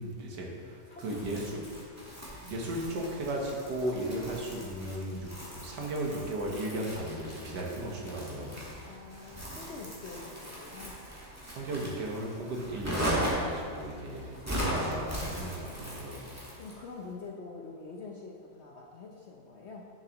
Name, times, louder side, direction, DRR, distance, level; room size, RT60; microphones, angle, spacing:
voice 1, 0.0-1.6 2.4-8.6 11.5-16.3, right 1 dB, 80° right, -1 dB, 1.8 m, -36 dB
voice 2, 0.8-1.6 8.8-11.0 16.6-19.8, left 4 dB, 60° left, -1 dB, 0.7 m, -46 dB
Crumpling crinkling, 1.0-16.8, equal, 10° right, 1.5 m, -38 dB
10.0 x 7.2 x 3.0 m, 2.3 s
omnidirectional pair, 1.8 m